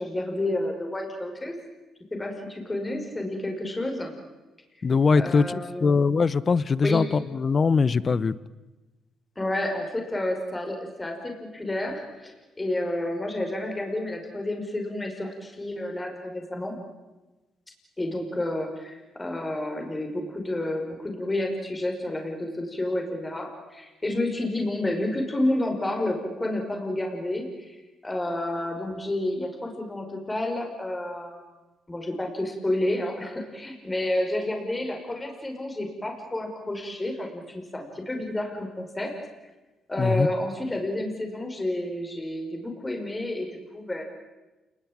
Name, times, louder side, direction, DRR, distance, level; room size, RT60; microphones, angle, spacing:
voice 1, 0.0-1.5 2.1-4.1 5.2-6.0 6.8-7.0 9.4-16.8 18.0-31.4 31.9-39.1 39.9-44.0, left 1 dB, 15° left, 3 dB, 5.6 m, -30 dB
voice 2, 4.8-8.4 40.0-40.3, left 4 dB, 40° left, 19 dB, 1.0 m, -22 dB
28.5 x 20.0 x 8.8 m, 1.1 s
cardioid pair, 90°, 0 cm